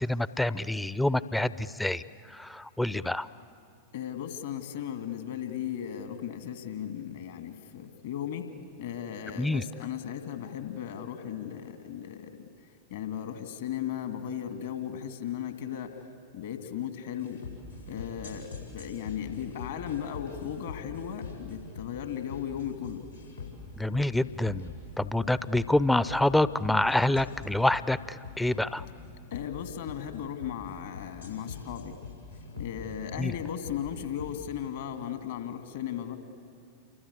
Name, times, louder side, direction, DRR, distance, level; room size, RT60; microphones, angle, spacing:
voice 1, 0.0-2.0 2.3-3.3 9.4-9.6 23.8-28.9 33.2-33.3, left 1 dB, 5° left, 16 dB, 0.6 m, -27 dB
voice 2, 3.9-8.5 8.8-12.5 12.9-16.0 16.3-17.4 17.9-23.1 29.3-32.0 32.6-36.2, left 9 dB, 60° left, 7 dB, 2.2 m, -36 dB
sound 1, 17.2-34.4, left 4 dB, 90° left, 6.6 m, -43 dB
28.5 x 24.0 x 8.6 m, 2.4 s
figure-of-eight pair, 90°, 0 cm